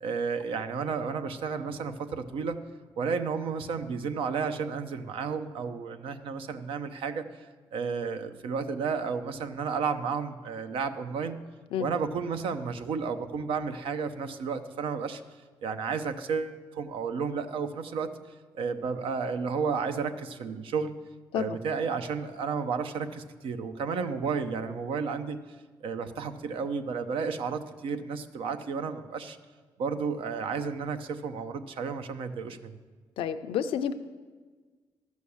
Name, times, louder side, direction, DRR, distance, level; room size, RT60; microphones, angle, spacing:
voice 1, 0.0-2.6 3.0-11.4 11.8-15.2 15.6-18.1 18.5-20.9 21.3-25.4 25.8-29.4 29.8-32.7, right 5 dB, 80° right, 9 dB, 0.8 m, -32 dB
voice 2, 33.2-33.9, left 8 dB, 85° left, 8 dB, 0.5 m, -29 dB
13.0 x 6.3 x 7.0 m, 1.4 s
cardioid pair, 70°, 9 cm